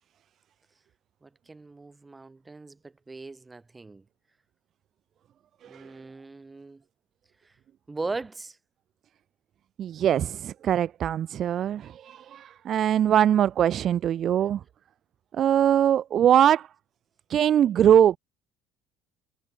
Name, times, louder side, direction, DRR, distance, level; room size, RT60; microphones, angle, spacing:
voice 1, 1.2-4.0 5.6-6.8 7.4-7.5 7.9-8.6, right 3 dB, 20° right, 6.0 m, -39 dB
voice 2, 9.8-14.6 15.3-16.7 17.3-18.2, right 10 dB, 50° right, 0.9 m, -22 dB
hypercardioid pair, 75°, 0 cm